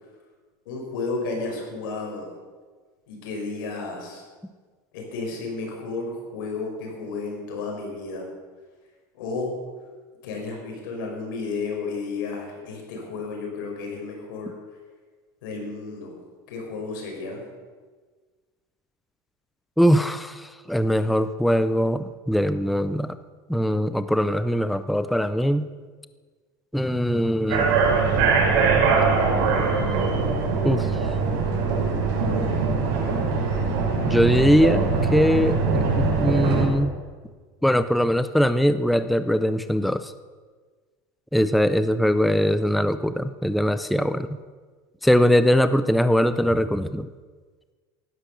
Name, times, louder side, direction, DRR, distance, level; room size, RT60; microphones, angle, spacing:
voice 1, 0.7-2.3 3.1-4.2 4.9-8.3 9.1-9.6 10.2-14.5 15.4-16.1 16.5-17.4, left 3 dB, 90° left, 0 dB, 6.0 m, -32 dB
voice 2, 19.8-23.2 23.5-25.7 26.7-27.7 30.6-30.9 34.1-36.9 37.6-40.1 41.3-44.3 45.0-47.1, equal, ahead, 12 dB, 0.4 m, -21 dB
sound 1, 27.5-36.6, right 4 dB, 70° right, 5.8 m, -22 dB
16.0 x 11.5 x 6.8 m, 1.4 s
cardioid pair, 170°, 11 cm